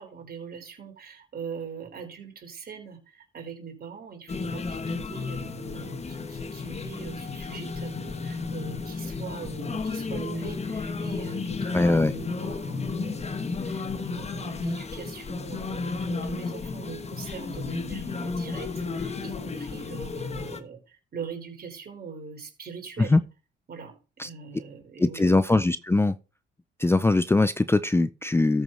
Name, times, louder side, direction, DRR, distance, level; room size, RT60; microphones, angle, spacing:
voice 1, 0.0-23.2 23.7-23.9 24.2-25.4, right 5 dB, 50° right, 3.7 m, -42 dB
sound 1, 4.3-20.6, left 4 dB, 35° left, 1.2 m, -33 dB
voice 2, 11.6-12.1 23.0-23.2 24.2-24.3 25.0-26.1 26.8-28.6, left 2 dB, 10° left, 0.5 m, -21 dB
13.5 x 4.7 x 5.4 m
cardioid pair, 90°, 20 cm